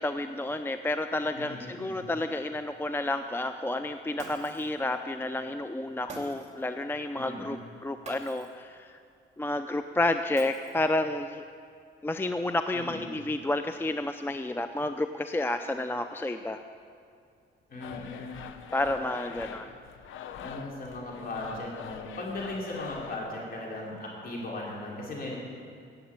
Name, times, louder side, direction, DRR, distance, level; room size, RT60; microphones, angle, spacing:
voice 1, 0.0-9.0 9.4-11.4 12.0-16.6 18.7-19.7, left 2 dB, 10° left, 9 dB, 0.5 m, -30 dB
voice 2, 1.3-2.1 7.1-7.6 12.7-13.1 17.7-18.4 19.4-19.5 20.4-25.4, left 2 dB, 50° left, -3 dB, 4.9 m, -38 dB
Shatter, 4.2-4.8 6.1-6.7 8.0-8.6 10.4-11.0, right 3 dB, 35° right, 2.6 m, -46 dB
sound 1, 17.8-23.2, left 8 dB, 80° left, 0.9 m, -44 dB
16.0 x 7.9 x 8.8 m, 2.4 s
cardioid pair, 90°, 20 cm